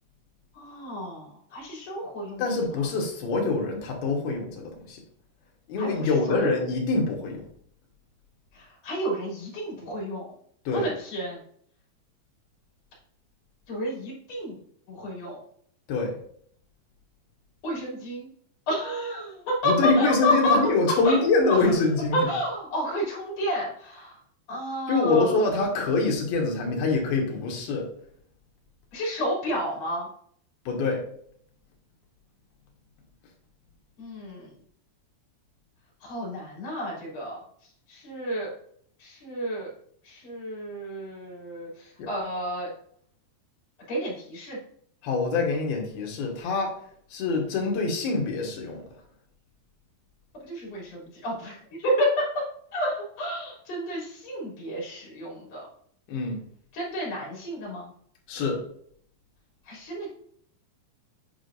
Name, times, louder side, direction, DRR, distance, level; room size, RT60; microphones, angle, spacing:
voice 1, 0.5-2.4 5.8-6.5 8.5-10.3 10.7-11.4 13.7-14.6 14.9-15.4 17.6-18.3 18.7-20.6 21.0-21.2 21.5-21.6 22.1-24.2 24.5-25.4 28.9-30.1 34.0-34.5 36.0-37.4 37.9-38.5 39.0-39.7 40.1-42.7 43.9-44.6 50.4-52.4 52.7-55.6 56.7-57.9 59.7-60.1, equal, 40° left, -4 dB, 3.6 m, -30 dB
voice 2, 2.4-5.0 5.7-7.5 10.7-10.9 15.9-16.2 19.6-22.3 24.9-27.9 30.7-31.0 42.0-42.1 45.0-46.8 47.1-48.8 56.1-56.4 58.3-58.6, left 3 dB, 70° left, 0 dB, 2.8 m, -25 dB
8.2 x 4.9 x 2.6 m, 0.62 s
omnidirectional pair, 5.2 m